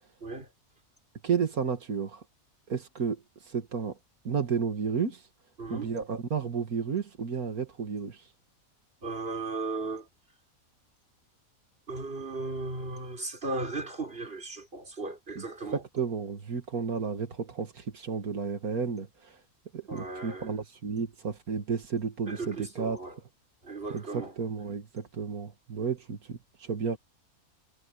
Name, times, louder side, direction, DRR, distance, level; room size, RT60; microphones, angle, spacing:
voice 1, 1.2-2.2 2.7-4.0 4.2-5.2 5.7-8.2 15.4-15.5 15.7-19.3 19.7-23.0 23.9-27.0, right 6 dB, 80° right, 2.3 m, -32 dB
voice 2, 5.6-5.9 9.0-10.1 11.9-15.8 19.9-20.5 22.3-23.2 23.6-24.3, right 3 dB, 40° right, 4.6 m, -36 dB
omnidirectional pair, 1.5 m